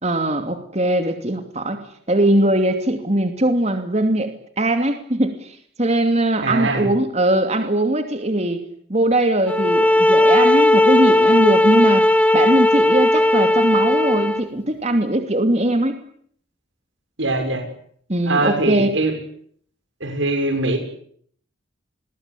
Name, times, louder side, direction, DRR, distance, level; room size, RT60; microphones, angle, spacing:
voice 1, 0.0-1.8 2.1-8.6 8.9-12.0 12.3-16.0 18.1-18.9, right 1 dB, 35° right, 6 dB, 2.7 m, -20 dB
voice 2, 6.4-6.9 17.2-17.6 18.3-19.1 20.0-20.8, right 2 dB, 65° right, 5 dB, 6.9 m, -21 dB
sound 1, 9.5-14.5, left 1 dB, 5° left, 1.2 m, -16 dB
29.0 x 22.5 x 8.7 m, 0.64 s
head